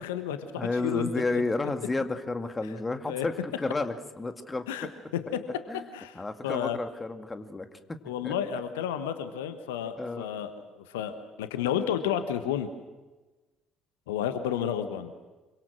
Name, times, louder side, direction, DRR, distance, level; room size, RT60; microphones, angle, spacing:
voice 1, 0.0-1.4 3.1-3.2 4.7-4.9 5.1-5.4 5.9-6.8 8.1-12.7 14.1-15.1, left 9 dB, 70° left, 10 dB, 1.3 m, -31 dB
voice 2, 0.6-4.9 5.7-5.9 6.1-8.3 10.0-10.4, left 3 dB, 20° left, 8 dB, 2.1 m, -32 dB
26.5 x 24.5 x 6.4 m, 1.2 s
figure-of-eight pair, 50°, 0 cm